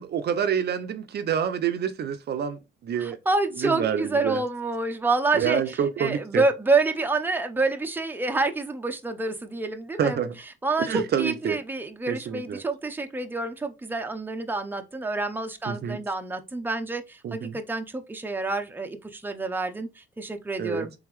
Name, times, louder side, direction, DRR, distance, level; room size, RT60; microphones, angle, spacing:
voice 1, 0.0-3.2 3.6-4.4 5.3-6.4 10.0-10.3 10.8-11.6 12.1-12.6 15.7-16.0 17.2-17.6 20.6-20.9, right 8 dB, 55° right, 0.5 m, -27 dB
voice 2, 3.0-5.6 6.0-10.2 10.6-20.9, right 3 dB, 10° right, 0.6 m, -28 dB
3.5 x 3.4 x 3.2 m
cardioid pair, 90°, 20 cm